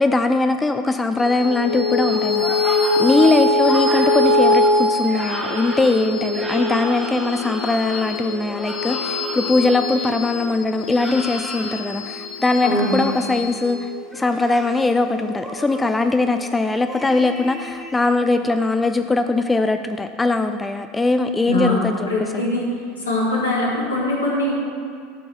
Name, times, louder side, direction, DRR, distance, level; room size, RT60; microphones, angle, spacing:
voice 1, 0.0-22.1 22.3-22.5, left 3 dB, 15° left, 8 dB, 0.4 m, -21 dB
sound 1, 1.2-15.9, left 2 dB, 50° left, 2.9 m, -23 dB
sound 2, 2.0-9.8 10.8-11.8 12.5-13.2 14.0-14.8 15.4-16.0 16.9-18.0, equal, 5° right, 1.7 m, -34 dB
voice 2, 12.6-12.9 21.5-21.8 22.1-22.7 23.1-24.6, left 1 dB, 75° left, -4 dB, 2.1 m, -22 dB
11.5 x 4.6 x 6.8 m, 2.2 s
figure-of-eight pair, 75°, 0 cm